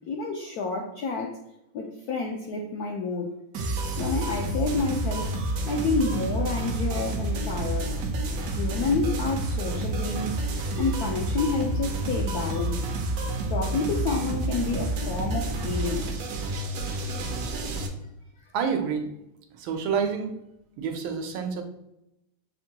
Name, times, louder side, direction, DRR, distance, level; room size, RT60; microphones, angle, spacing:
voice 1, 0.1-1.4 1.7-3.3 4.0-5.3 5.7-7.9 8.6-10.4 10.8-12.8 13.5-16.1, left 4 dB, 85° left, 1 dB, 0.8 m, -29 dB
sound 1, 3.5-17.9, right 2 dB, 70° right, 0.9 m, -29 dB
voice 2, 18.5-19.1 19.5-20.3 20.8-21.6, right 6 dB, 85° right, 5 dB, 1.5 m, -28 dB
6.3 x 2.2 x 2.8 m, 0.85 s
omnidirectional pair, 2.2 m